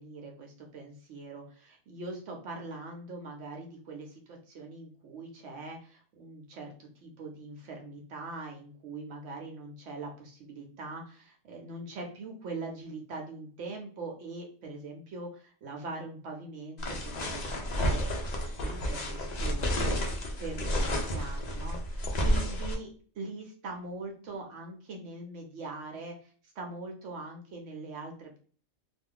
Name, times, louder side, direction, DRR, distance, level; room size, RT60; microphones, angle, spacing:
voice 1, 0.0-18.1 18.4-22.9 23.1-28.4, right 3 dB, 75° right, 1 dB, 0.9 m, -42 dB
sound 1, 16.8-22.7, equal, 50° left, 0.5 m, -31 dB
2.5 x 2.3 x 3.6 m, 0.43 s
omnidirectional pair, 1.3 m